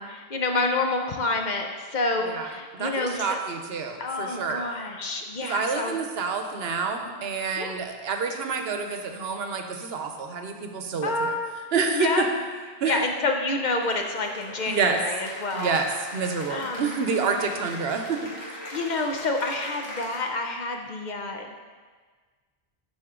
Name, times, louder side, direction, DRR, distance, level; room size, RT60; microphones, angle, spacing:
voice 1, 0.0-3.4 4.0-6.0 7.6-7.8 11.0-11.5 11.9-12.2 12.8-15.7 16.5-17.0 18.7-21.6, left 2 dB, 50° left, 3 dB, 0.7 m, -28 dB
voice 2, 2.2-4.6 5.4-11.4 11.7-12.3 12.8-13.0 14.7-15.0 15.5-18.3, right 5 dB, 75° right, 5 dB, 0.9 m, -28 dB
Cheering / Applause, 13.8-20.5, left 1 dB, 85° left, 2.0 m, -41 dB
11.5 x 4.4 x 3.7 m, 1.5 s
omnidirectional pair, 1.0 m